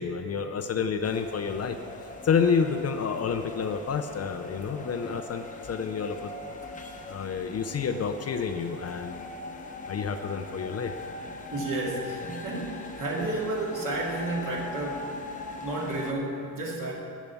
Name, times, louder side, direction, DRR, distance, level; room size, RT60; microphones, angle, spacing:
voice 1, 0.0-1.8 2.2-6.3 7.1-9.2 9.9-10.9, left 6 dB, 40° left, 7 dB, 0.5 m, -29 dB
sound 1, 1.0-16.1, left 2 dB, 20° left, 0.8 m, -41 dB
voice 2, 11.5-15.2 15.5-16.9, right 2 dB, 55° right, -2 dB, 2.4 m, -31 dB
10.5 x 8.1 x 7.0 m, 2.4 s
wide cardioid pair, 180°, 39 cm